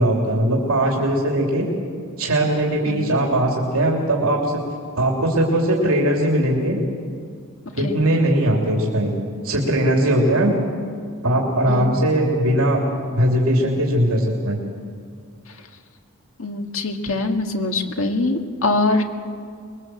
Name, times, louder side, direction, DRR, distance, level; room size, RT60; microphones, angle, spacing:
voice 1, 0.0-1.7 2.2-4.6 4.9-6.8 7.7-9.2 9.4-10.5 11.2-12.8 13.1-14.6, right 1 dB, 70° right, -1 dB, 3.1 m, -19 dB
voice 2, 16.4-19.0, left 2 dB, 65° left, 4 dB, 2.1 m, -23 dB
25.0 x 21.5 x 7.8 m, 2.2 s
head